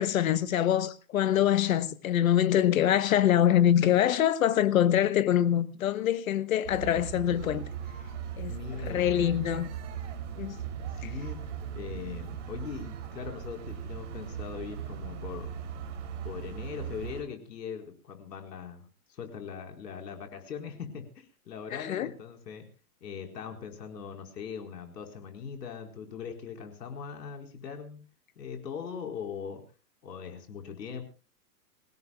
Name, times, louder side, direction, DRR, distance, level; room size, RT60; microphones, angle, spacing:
voice 1, 0.0-7.6 8.4-8.5 8.9-9.7 10.4-10.6 21.7-22.1, left 11 dB, 55° left, 1.3 m, -24 dB
sound 1, 6.6-17.2, right 8 dB, 45° right, 3.3 m, -38 dB
voice 2, 8.5-9.4 10.9-15.5 16.2-22.6 23.0-28.0 28.4-29.6 30.0-31.0, left 7 dB, 75° left, 4.5 m, -41 dB
27.0 x 17.0 x 2.3 m
hypercardioid pair, 170°, 49 cm